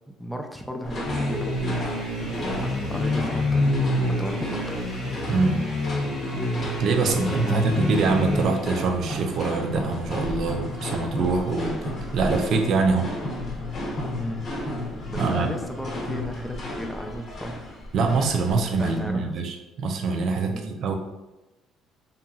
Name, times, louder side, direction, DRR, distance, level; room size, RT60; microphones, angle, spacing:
voice 1, 0.2-1.9 2.6-3.7 4.1-4.8 7.0-7.7 14.2-14.4 15.1-17.6 18.8-19.3 20.5-20.7, equal, 5° left, 3 dB, 0.4 m, -34 dB
sound 1, 0.8-19.1, left 1 dB, 55° left, 0.8 m, -33 dB
sound 2, 1.0-8.8, left 1 dB, 85° left, 1.4 m, -27 dB
voice 2, 5.3-5.7 6.8-13.1 15.2-15.5 17.9-20.9, right 4 dB, 65° right, 4 dB, 0.4 m, -24 dB
2.8 x 2.7 x 2.4 m, 1.0 s
supercardioid pair, 75°, 0 cm